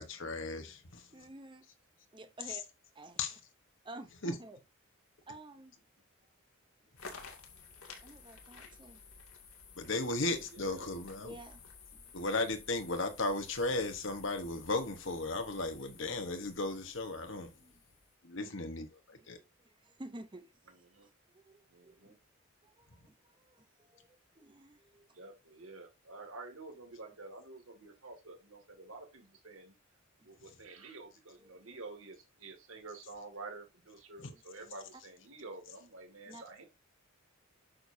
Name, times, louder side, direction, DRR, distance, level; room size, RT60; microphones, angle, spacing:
voice 1, 0.0-1.1 2.5-2.6 3.2-3.3 4.2-4.3 9.8-11.3 12.1-17.5 18.2-19.4 34.2-34.3, left 2 dB, 60° left, 1.2 m, -35 dB
voice 2, 1.1-1.7 2.1-2.6 2.9-3.2 3.8-4.6 5.3-5.8 8.0-9.0 11.2-11.6 11.9-12.0 17.6-17.8 18.4-18.6 19.2-19.3 19.6-20.5 21.3-22.1 22.6-25.1 27.1-27.2 30.5-30.6 31.4-31.7 34.9-35.0 36.2-36.4, right 1 dB, 20° right, 0.7 m, -51 dB
sound 1, 7.0-18.1, left 5 dB, 85° left, 2.3 m, -54 dB
voice 3, 10.6-10.9 20.9-21.1 21.7-22.1 25.1-29.7 30.2-36.6, right 3 dB, 70° right, 2.2 m, -49 dB
8.8 x 6.7 x 2.7 m
head